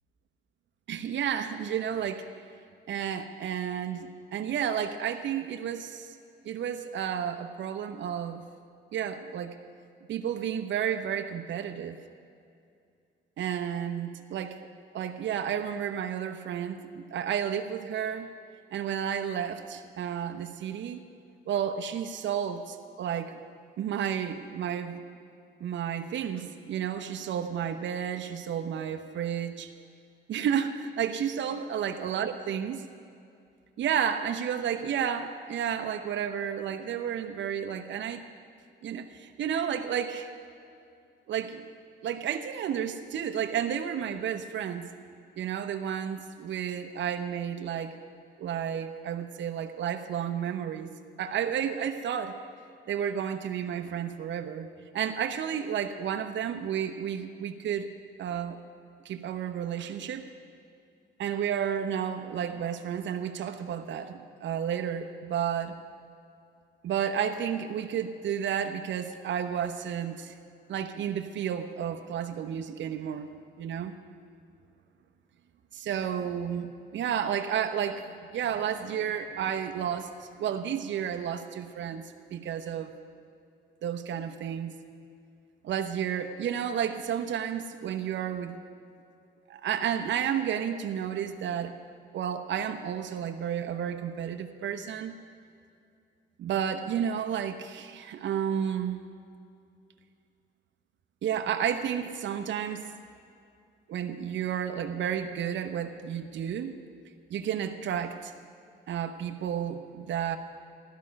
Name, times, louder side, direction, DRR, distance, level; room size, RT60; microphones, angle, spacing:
voice 1, 0.9-2.2 2.9-6.1 6.4-8.5 8.9-9.6 10.1-12.0 13.4-14.6 14.9-18.3 18.7-21.1 21.5-23.4 23.8-25.0 25.6-29.7 30.3-32.8 33.8-38.2 38.8-40.3 41.3-41.6 42.0-44.9 45.4-48.0 48.4-50.9 51.2-52.4 52.9-54.7 54.9-57.9 58.2-58.6 59.0-60.3 61.2-65.7 66.8-70.3 70.7-73.3 73.6-73.9 75.7-80.1 80.4-82.0 82.3-83.0 83.8-84.8 85.6-88.6 89.5-91.7 92.1-95.2 96.4-99.0 101.2-102.8 103.9-106.8 107.3-108.3 108.9-110.4, right 8 dB, 70° right, 6 dB, 0.9 m, -31 dB
16.0 x 12.5 x 5.3 m, 2.5 s
cardioid pair, 90°, 20 cm